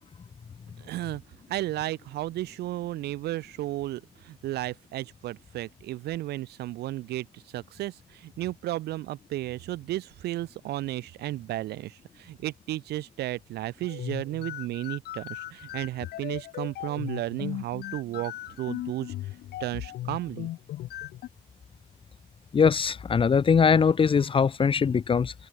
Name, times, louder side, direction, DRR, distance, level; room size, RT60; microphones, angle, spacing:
voice 1, 0.8-1.2 1.5-18.3 18.6-19.1 19.6-20.5, right 15 dB, 75° right, 3.4 m, -33 dB
sound 1, 13.8-21.3, left 14 dB, 70° left, 2.1 m, -37 dB
voice 2, 22.5-25.3, left 6 dB, 30° left, 1.3 m, -21 dB
cardioid pair, 110°, 17 cm